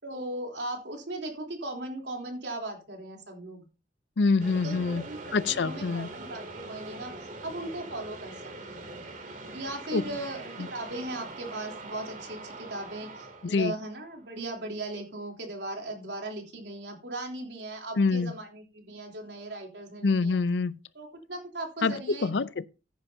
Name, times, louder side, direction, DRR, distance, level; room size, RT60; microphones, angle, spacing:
voice 1, 0.0-3.7 4.6-8.4 8.7-8.9 9.5-20.4 20.9-22.3, right 1 dB, 75° right, 3.4 m, -38 dB
voice 2, 4.2-5.0 5.3-6.1 9.9-10.0 13.4-13.7 18.0-18.3 20.0-20.8 21.8-21.9 22.2-22.7, left 4 dB, 80° left, 0.6 m, -25 dB
sound 1, 4.4-14.6, right 2 dB, 45° right, 2.9 m, -43 dB
14.5 x 10.5 x 2.8 m
head